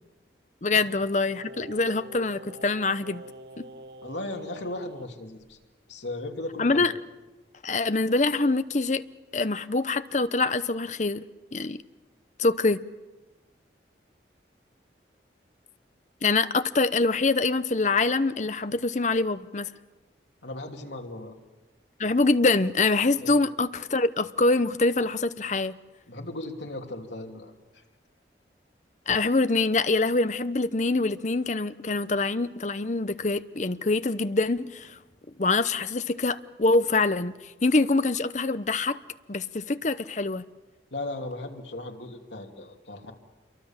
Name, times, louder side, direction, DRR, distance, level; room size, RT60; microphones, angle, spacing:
voice 1, 0.6-3.2 3.6-3.7 6.6-6.9 7.6-9.0 9.3-11.2 11.5-11.8 12.4-12.8 16.2-19.7 22.0-25.8 29.1-35.0 35.4-37.3 37.6-39.0 39.3-40.4, left 3 dB, 40° left, 12 dB, 0.8 m, -25 dB
Singing, 1.3-5.1 5.4-5.5, right 1 dB, 65° right, 1.3 m, -45 dB
voice 2, 4.0-5.6 5.9-6.9 20.4-21.3 23.2-23.4 26.1-27.8 40.9-43.1, left 2 dB, 75° left, 3 dB, 2.9 m, -37 dB
27.5 x 23.5 x 7.4 m, 1.2 s
head